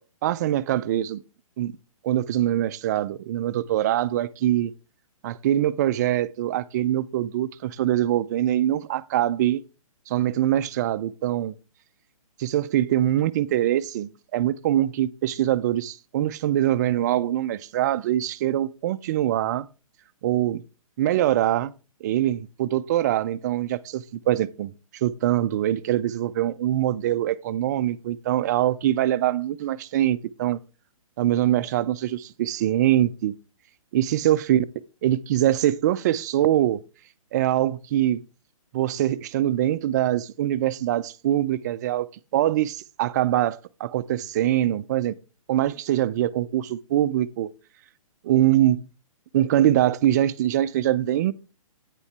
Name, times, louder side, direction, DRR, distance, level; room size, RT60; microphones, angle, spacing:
voice 1, 0.2-1.2 1.6-1.8 2.0-4.7 5.2-9.6 10.1-11.5 12.4-19.7 20.2-20.6 21.0-21.7 22.0-24.7 25.0-30.6 31.2-33.3 33.9-34.6 35.0-36.8 37.3-38.2 38.7-45.1 45.5-47.5 48.2-48.9 49.3-51.3, right 12 dB, 30° right, 0.4 m, -23 dB
8.9 x 7.1 x 3.3 m
hypercardioid pair, 145°, 18 cm